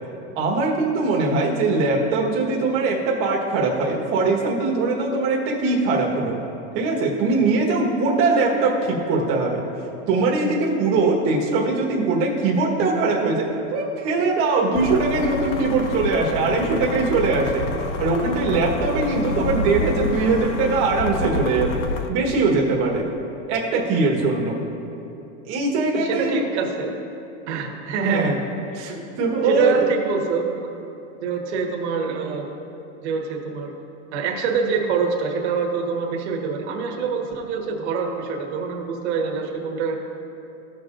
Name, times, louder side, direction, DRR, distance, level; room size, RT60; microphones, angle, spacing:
voice 1, 0.3-6.4 6.7-9.6 10.1-17.7 18.0-21.8 22.1-23.1 23.5-24.6 25.4-26.4 28.0-28.4 28.8-29.8, right 3 dB, 35° right, -1 dB, 1.4 m, -21 dB
sound 1, 14.7-22.1, left 3 dB, 80° left, 0.8 m, -28 dB
voice 2, 25.9-27.0 27.5-28.4 28.7-28.9 29.4-30.5 31.2-32.5 33.0-33.7 34.1-40.0, right 5 dB, 65° right, 0 dB, 1.5 m, -25 dB
15.5 x 6.6 x 2.5 m, 3.0 s
supercardioid pair, 165°, 36 cm